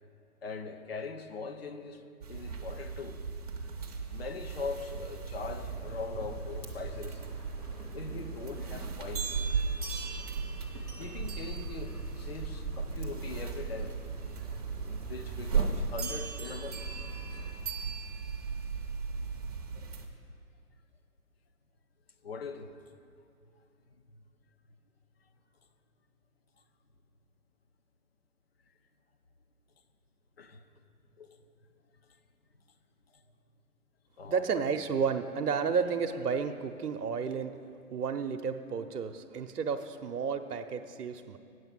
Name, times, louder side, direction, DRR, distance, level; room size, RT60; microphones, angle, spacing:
voice 1, 0.4-2.0 2.3-3.2 4.1-7.3 7.9-9.4 11.0-14.0 14.5-14.6 14.8-16.8 22.2-22.7 30.4-30.6 31.2-31.3 34.2-34.6, left 4 dB, 40° left, 8 dB, 0.6 m, -41 dB
sound 1, 2.2-20.1, right 5 dB, 25° right, 0.6 m, -37 dB
sound 2, 5.4-17.5, right 2 dB, 10° left, 0.9 m, -43 dB
voice 2, 34.3-37.5 37.9-41.4, right 6 dB, 75° right, 6 dB, 0.7 m, -32 dB
8.9 x 8.0 x 6.0 m, 2.4 s
hypercardioid pair, 150°, 46 cm